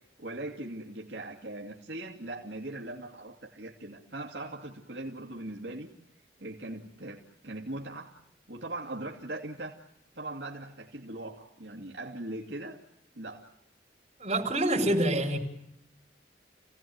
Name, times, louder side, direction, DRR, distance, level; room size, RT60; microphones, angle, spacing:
voice 1, 0.2-5.9 6.4-8.1 8.5-9.8 10.1-12.8 13.1-13.5, right 2 dB, 65° right, -1 dB, 2.4 m, -40 dB
voice 2, 14.2-15.4, right 1 dB, 35° right, 0 dB, 5.7 m, -26 dB
29.5 x 17.0 x 9.4 m, 0.78 s
head